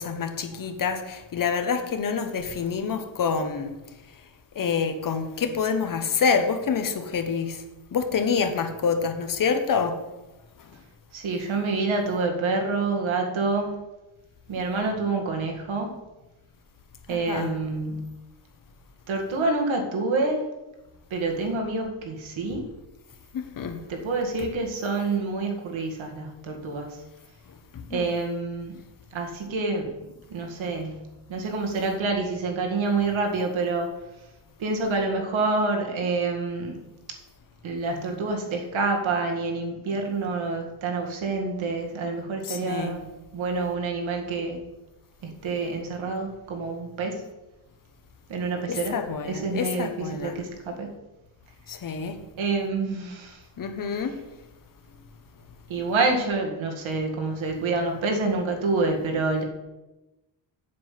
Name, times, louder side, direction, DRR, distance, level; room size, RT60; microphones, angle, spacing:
voice 1, 0.0-3.8 4.5-7.6 7.9-10.0 10.6-10.7 17.1-17.6 23.3-23.8 27.5-28.1 42.4-43.0 48.7-50.4 51.7-52.2 53.6-54.2, left 5 dB, 45° left, 1.0 m, -27 dB
voice 2, 11.1-13.7 14.5-15.9 17.1-18.0 19.1-20.4 21.1-22.7 23.9-27.0 27.9-28.7 29.1-29.9 30.3-31.0 31.3-33.9 34.6-36.8 37.6-43.0 43.3-44.6 45.2-47.2 48.3-48.9 49.3-50.9 52.4-53.4 55.7-59.4, right 3 dB, 80° right, 2.1 m, -27 dB
7.8 x 7.7 x 5.8 m
wide cardioid pair, 170°, 46 cm